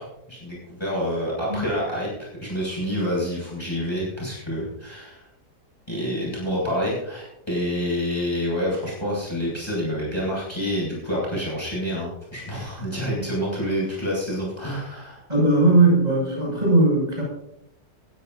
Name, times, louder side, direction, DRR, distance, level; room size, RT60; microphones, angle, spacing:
voice 1, 0.0-5.2 5.9-15.2, equal, 15° left, -5 dB, 6.6 m, -28 dB
voice 2, 15.3-17.2, right 2 dB, 25° right, -5 dB, 6.9 m, -18 dB
21.0 x 13.5 x 2.7 m, 0.84 s
omnidirectional pair, 1.8 m